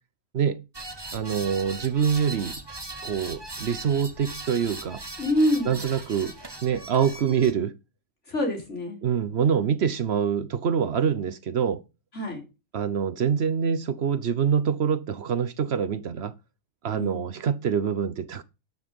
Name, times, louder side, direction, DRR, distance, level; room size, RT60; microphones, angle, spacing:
sound 1, 0.7-7.5, right 2 dB, 20° right, 1.2 m, -39 dB
voice 1, 1.1-2.5 3.0-5.0 5.7-6.3 6.6-7.7 9.0-11.8 12.7-16.3 16.8-18.4, right 7 dB, 60° right, 1.1 m, -25 dB
voice 2, 5.2-5.8 8.3-9.0 12.1-12.4 16.9-17.3, left 1 dB, 70° left, 4.3 m, -26 dB
12.0 x 6.4 x 5.3 m
omnidirectional pair, 1.3 m